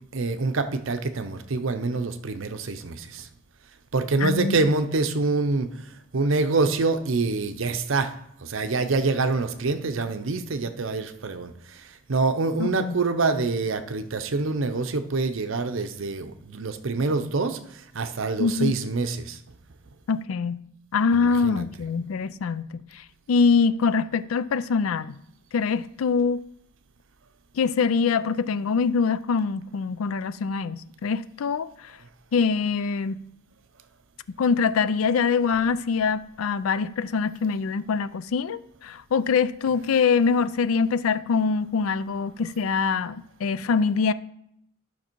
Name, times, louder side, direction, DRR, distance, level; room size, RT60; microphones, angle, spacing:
voice 1, 0.1-3.3 3.9-8.1 8.4-19.4 21.1-21.6, right 3 dB, 65° right, 0.7 m, -26 dB
voice 2, 4.2-4.6 12.6-12.9 18.4-18.7 20.1-20.6 20.9-25.2 25.5-26.4 27.6-31.9 32.3-33.2 34.4-44.1, left 5 dB, 80° left, 0.4 m, -24 dB
11.5 x 5.9 x 4.5 m
head